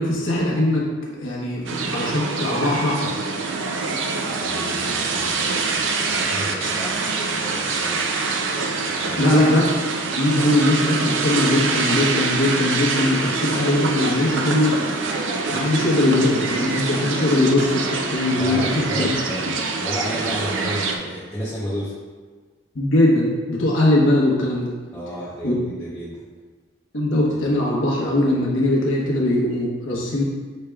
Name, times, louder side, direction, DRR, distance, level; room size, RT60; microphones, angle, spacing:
voice 1, 0.0-3.1 9.2-9.7 10.2-14.8 15.5-19.1 22.7-24.7 25.4-25.5 26.9-30.2, left 1 dB, 90° left, -4 dB, 1.0 m, -20 dB
sound 1, 1.7-21.0, right 4 dB, 80° right, 0.4 m, -25 dB
voice 2, 4.3-8.0 9.0-9.3 18.4-19.5 19.8-22.0 24.9-26.2, equal, 15° left, -10 dB, 0.7 m, -32 dB
6.4 x 3.2 x 2.3 m, 1.5 s
head